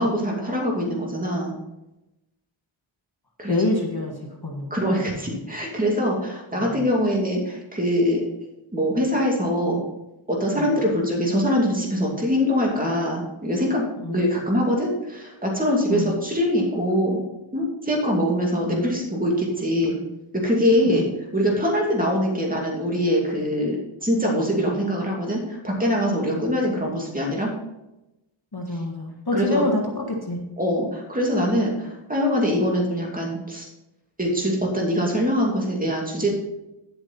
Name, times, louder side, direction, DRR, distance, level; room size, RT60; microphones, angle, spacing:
voice 1, 0.0-1.5 3.4-3.6 4.7-8.3 8.7-9.8 10.3-17.2 17.5-20.0 20.3-21.0 21.3-27.5 29.3-29.6 30.6-33.7 34.2-36.3, equal, 15° right, -2 dB, 2.7 m, -23 dB
voice 2, 3.5-4.2 4.4-4.7 6.5-6.9 10.6-10.8 14.0-14.2 15.9-16.1 18.6-18.8 20.9-21.0 26.3-26.4 28.5-30.4, left 2 dB, 50° left, 0 dB, 1.8 m, -26 dB
11.0 x 7.8 x 4.3 m, 0.93 s
wide cardioid pair, 60°, 50 cm